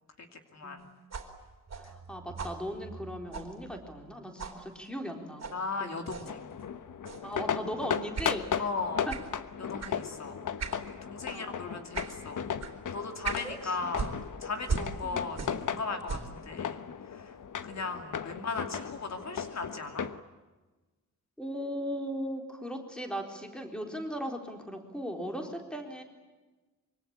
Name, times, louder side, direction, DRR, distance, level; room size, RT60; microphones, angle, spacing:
voice 1, 0.2-0.8 5.5-6.4 8.6-9.1 9.6-10.4 11.0-12.4 12.9-14.1 14.4-16.8 17.1-17.3 17.6-20.1, left 4 dB, 60° left, 5 dB, 2.7 m, -37 dB
sound 1, 1.1-4.1 4.4-4.6 5.4-5.6 6.1-6.3 7.1-7.3 8.2-8.4 9.1-9.3 9.8-10.0 10.6-10.8 11.2-11.4 11.9-12.2 12.6-12.8 13.2-13.5 13.9-15.7 16.0-16.4, right 5 dB, 55° right, 3.4 m, -38 dB
voice 2, 1.8-5.4 5.8-6.1 7.2-8.7 9.1-9.2 10.4-10.5 11.3-11.9 13.4-13.8 15.0-15.2 18.3-18.5 21.4-26.0, equal, 5° left, 3 dB, 3.9 m, -38 dB
sound 2, 6.3-20.2, left 8 dB, 75° left, 1.2 m, -36 dB
26.0 x 24.5 x 8.8 m, 1.2 s
wide cardioid pair, 165°, 31 cm